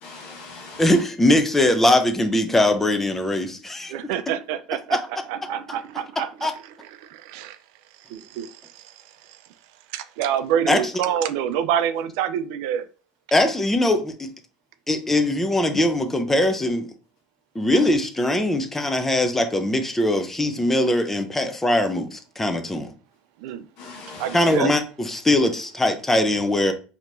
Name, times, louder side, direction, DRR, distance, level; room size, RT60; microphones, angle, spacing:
voice 1, 0.0-1.0 15.7-15.8 17.7-17.9 23.8-24.7, left 3 dB, 65° left, 1.3 m, -39 dB
voice 2, 0.8-3.9 4.9-5.0 6.4-6.5 10.7-10.8 13.3-14.3 14.9-16.9 17.5-22.9 24.3-26.7, left 1 dB, 10° left, 0.6 m, -21 dB
voice 3, 3.9-5.0 5.3-6.5 6.8-7.6 8.1-8.8 9.9-12.9 23.4-23.7 24.2-24.7, right 9 dB, 75° right, 0.4 m, -27 dB
4.4 x 2.9 x 2.6 m
supercardioid pair, 95°, 3 cm